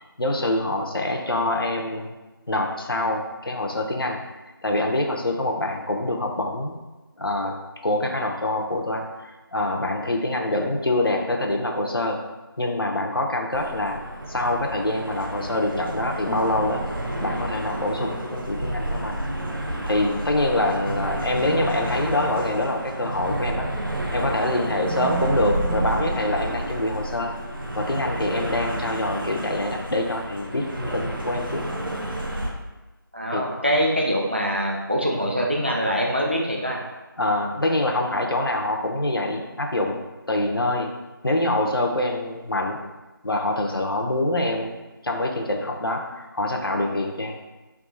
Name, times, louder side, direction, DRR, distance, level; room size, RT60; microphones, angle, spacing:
voice 1, 0.0-2.2 2.5-4.2 4.6-6.7 7.2-7.5 7.8-12.2 12.6-14.0 14.3-16.8 17.2-19.2 19.9-23.7 24.1-27.3 27.7-31.6 33.3-33.5 37.2-40.0 40.3-40.9 41.2-42.8 43.2-44.7 45.0-47.3, left 1 dB, 75° left, 2 dB, 0.7 m, -25 dB
sound 1, 13.5-32.5, right 1 dB, 65° right, 0.8 m, -30 dB
voice 2, 33.1-36.8, equal, 30° right, -1 dB, 0.5 m, -24 dB
3.6 x 2.7 x 3.9 m, 1.1 s
figure-of-eight pair, 180°, 12 cm